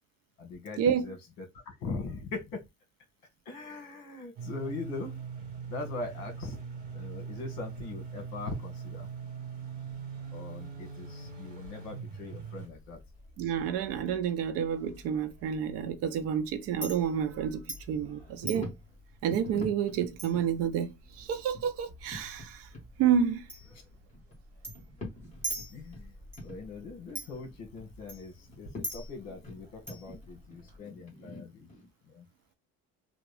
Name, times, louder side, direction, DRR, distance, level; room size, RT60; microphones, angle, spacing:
voice 1, 0.4-2.6 3.4-5.1 5.7-6.6 6.9-9.1 10.3-13.0 25.7-26.1 26.4-31.7 32.1-32.3, left 3 dB, 65° left, 1.6 m, -41 dB
sound 1, 4.4-12.7, right 5 dB, 30° right, 1.3 m, -41 dB
Chink clink, 12.6-30.8, right 1 dB, 10° right, 1.3 m, -46 dB
voice 2, 13.4-17.6 17.9-18.7 19.2-20.9 21.2-22.6 23.0-23.4, right 8 dB, 55° right, 0.6 m, -29 dB
sound 2, 18.4-18.9 19.3-20.5 21.5-22.5 22.7-22.9 23.6-24.4 24.7-26.1 26.4-26.6 26.9-27.9 28.4-28.8 29.2-31.9, left 1 dB, 25° left, 1.5 m, -44 dB
3.5 x 2.4 x 3.2 m
cardioid pair, 170°, 29 cm